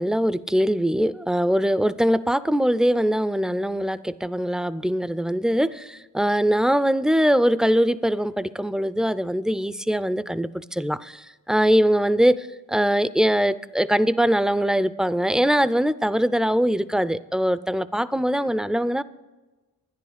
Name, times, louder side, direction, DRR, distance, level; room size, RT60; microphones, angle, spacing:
voice 1, 0.0-19.0, equal, ahead, 16 dB, 0.3 m, -22 dB
12.0 x 10.0 x 5.0 m, 1.2 s
cardioid pair, 70°, 38 cm